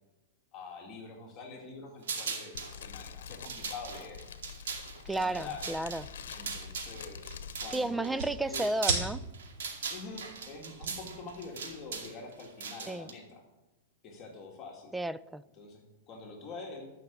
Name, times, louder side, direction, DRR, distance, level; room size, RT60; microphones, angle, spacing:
voice 1, 0.5-4.2 5.1-5.7 6.3-7.2 7.6-8.7 9.9-13.4 14.0-14.9 15.5-16.9, left 3 dB, 25° left, 0 dB, 2.1 m, -45 dB
sound 1, 2.0-2.7 3.3-9.1 9.3-13.1, right 5 dB, 80° right, 2.4 m, -40 dB
Fire, 2.5-7.7, left 7 dB, 80° left, 0.9 m, -46 dB
voice 2, 5.1-6.0 7.7-9.2 12.9-13.1 14.9-15.4, right 2 dB, 5° right, 16 dB, 0.3 m, -32 dB
sound 2, 5.2-12.0, right 4 dB, 45° right, 3.1 m, -40 dB
12.5 x 6.0 x 6.9 m, 1.0 s
hypercardioid pair, 150°, 0 cm